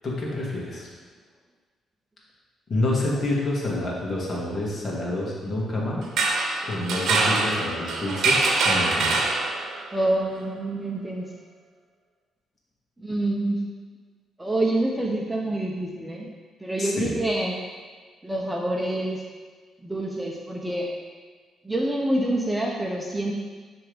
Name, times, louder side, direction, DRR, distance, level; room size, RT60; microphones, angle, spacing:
voice 1, 0.0-0.9 2.7-6.1 6.6-9.2 16.8-17.1, left 1 dB, 45° left, -4 dB, 1.9 m, -28 dB
sound 1, 6.0-9.9, right 3 dB, 75° right, 0.8 m, -24 dB
voice 2, 9.9-11.3 13.0-13.6 14.4-16.3 16.6-17.6 18.2-19.2 19.8-20.9 21.6-23.3, right 1 dB, 10° right, -1 dB, 0.8 m, -26 dB
9.8 x 3.5 x 3.5 m, 1.5 s
cardioid pair, 90°, 0 cm